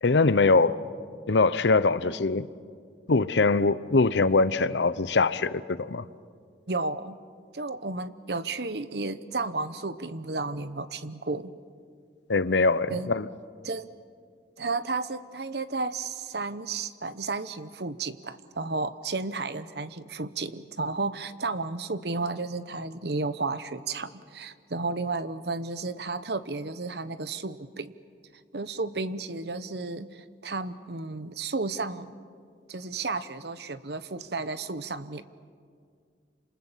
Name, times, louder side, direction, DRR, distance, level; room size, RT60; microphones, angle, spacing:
voice 1, 0.0-0.8 1.3-2.5 3.1-6.0 12.3-13.3, left 3 dB, 75° left, 16 dB, 0.8 m, -22 dB
voice 2, 6.7-7.2 7.5-11.5 12.9-13.1 13.6-13.9 14.6-28.0 28.5-32.1 32.7-35.2, right 3 dB, 65° right, 13 dB, 1.0 m, -33 dB
28.5 x 27.0 x 7.4 m, 2.1 s
head